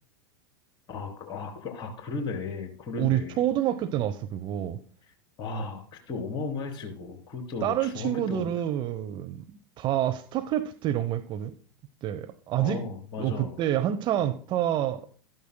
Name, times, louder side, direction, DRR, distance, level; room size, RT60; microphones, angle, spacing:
voice 1, 0.9-3.4 5.4-8.5 12.6-13.6, left 4 dB, 35° left, 3.3 m, -35 dB
voice 2, 3.0-4.8 7.6-11.5 12.0-12.8 13.2-15.1, right 11 dB, 35° right, 0.8 m, -28 dB
13.0 x 12.5 x 2.2 m
figure-of-eight pair, 90°, 13 cm